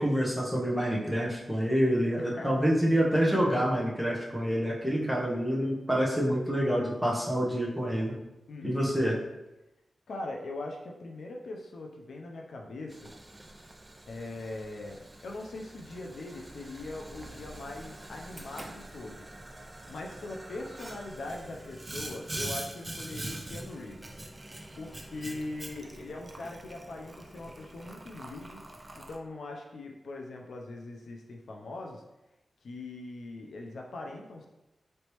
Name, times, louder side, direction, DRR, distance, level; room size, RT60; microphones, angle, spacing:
voice 1, 0.0-8.2 8.6-9.2, equal, ahead, -5 dB, 0.9 m, -27 dB
voice 2, 2.2-2.5 8.5-9.0 10.1-13.1 14.1-19.3 19.9-24.2 24.8-28.7 28.9-32.0 32.6-34.5, left 2 dB, 85° left, 1 dB, 0.5 m, -41 dB
Boiling, 12.9-29.2, right 1 dB, 20° right, 0.4 m, -44 dB
4.0 x 3.3 x 3.0 m, 0.96 s
wide cardioid pair, 135°, 0 cm